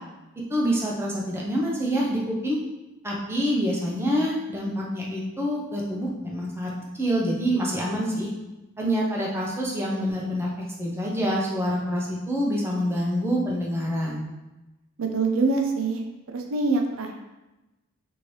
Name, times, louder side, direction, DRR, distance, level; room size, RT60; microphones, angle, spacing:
voice 1, 0.5-2.6 3.0-8.3 8.8-10.5 10.8-14.2, equal, 10° right, -3 dB, 0.5 m, -26 dB
voice 2, 15.0-16.0 16.3-17.2, right 3 dB, 70° right, 4 dB, 0.4 m, -24 dB
3.0 x 2.6 x 3.1 m, 1.0 s
head